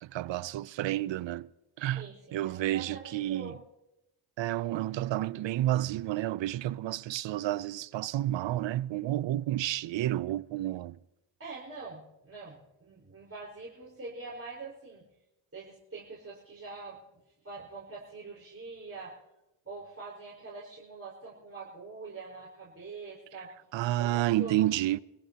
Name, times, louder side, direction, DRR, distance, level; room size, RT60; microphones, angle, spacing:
voice 1, 0.0-1.5 1.8-3.5 4.4-11.0 23.7-25.0, right 14 dB, 65° right, 0.6 m, -30 dB
voice 2, 1.9-3.6 11.4-15.1 15.5-17.0 17.4-19.2 19.6-23.5 24.0-24.7, right 3 dB, 30° right, 4.9 m, -44 dB
24.5 x 15.0 x 2.9 m
supercardioid pair, 55°, 48 cm